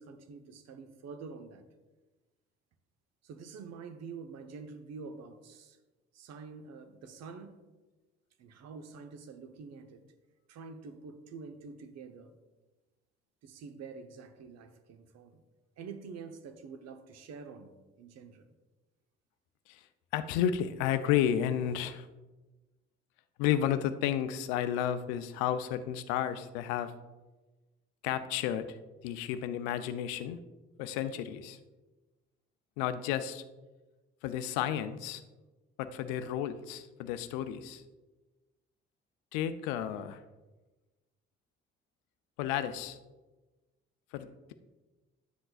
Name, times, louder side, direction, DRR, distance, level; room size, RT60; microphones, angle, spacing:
voice 1, 0.0-1.7 3.2-5.8 6.1-7.6 8.4-10.0 10.5-12.3 13.4-15.4 15.8-18.5, right 5 dB, 50° right, 8 dB, 0.8 m, -47 dB
voice 2, 20.1-22.1 23.4-26.9 28.0-30.4 30.8-31.6 32.8-33.4 34.2-35.2 35.8-37.8 39.3-40.2 42.4-43.0 44.1-44.5, left 10 dB, 65° left, 11 dB, 0.6 m, -32 dB
10.0 x 7.6 x 2.4 m, 1.2 s
figure-of-eight pair, 50°, 33 cm